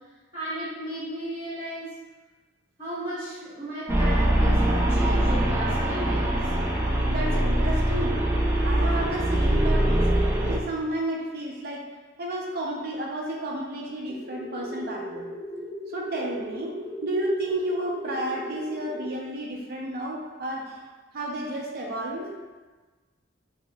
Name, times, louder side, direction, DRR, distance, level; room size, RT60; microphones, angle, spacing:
voice 1, 0.3-1.9 2.8-6.4, right 1 dB, 30° right, -14 dB, 1.3 m, -34 dB
sound 1, 3.9-10.6, right 1 dB, 15° right, 0.4 m, -23 dB
voice 2, 7.1-8.2 8.6-11.8 12.2-15.3 15.9-20.8 21.1-22.3, right 1 dB, 55° right, -1 dB, 0.6 m, -32 dB
sound 2, 14.1-19.1, equal, 5° left, 0.8 m, -37 dB
5.4 x 2.0 x 2.3 m, 1.3 s
head